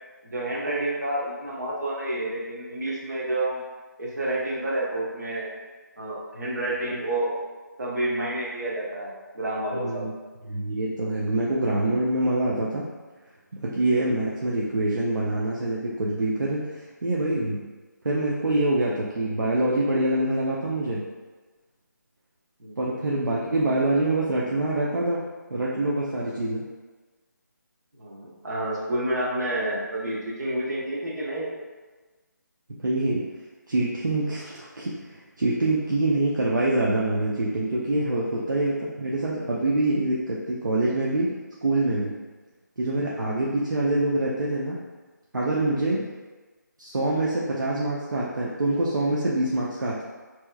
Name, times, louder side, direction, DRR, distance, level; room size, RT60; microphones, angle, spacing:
voice 1, 0.2-3.6 4.0-5.5 6.0-7.3 7.8-10.1 22.6-23.0 28.0-31.5 38.1-38.2 45.6-46.0, right 1 dB, 60° right, -5 dB, 1.0 m, -29 dB
voice 2, 9.7-10.1 10.4-12.9 13.6-17.6 18.0-21.0 22.8-25.2 25.5-26.7 32.8-33.2 33.7-41.4 41.6-42.1 42.8-44.8 45.3-46.0 46.8-50.0, right 2 dB, 80° right, -6 dB, 0.5 m, -25 dB
3.3 x 2.9 x 2.2 m, 1.3 s
figure-of-eight pair, 155°, 10 cm